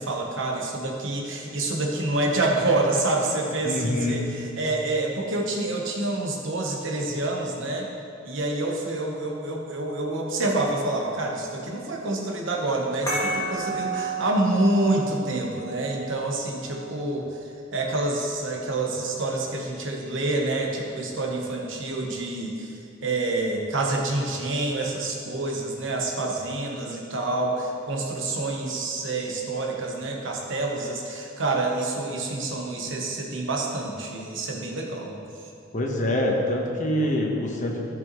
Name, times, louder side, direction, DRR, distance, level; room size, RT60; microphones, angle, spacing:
voice 1, 0.0-7.9 8.2-17.3 17.7-35.2, right 2 dB, 65° right, 0 dB, 1.1 m, -27 dB
voice 2, 3.6-4.2 35.7-37.8, left 1 dB, 40° left, 0 dB, 1.1 m, -25 dB
sound 1, 13.1-18.1, right 2 dB, 20° left, 1.9 m, -33 dB
13.5 x 5.4 x 3.1 m, 2.6 s
head